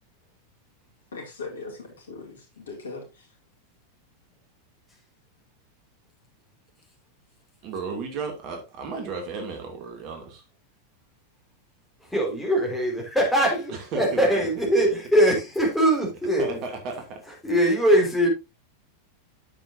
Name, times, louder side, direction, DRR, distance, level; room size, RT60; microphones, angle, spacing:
voice 1, 1.1-3.3, left 3 dB, 65° left, 2.5 m, -39 dB
voice 2, 7.6-10.4 13.7-14.2 14.8-14.9 16.4-17.2, right 4 dB, 40° right, 2.5 m, -34 dB
voice 3, 12.1-16.6 17.4-18.3, equal, 5° left, 4.7 m, -22 dB
10.0 x 7.9 x 2.7 m
figure-of-eight pair, 90°, 0 cm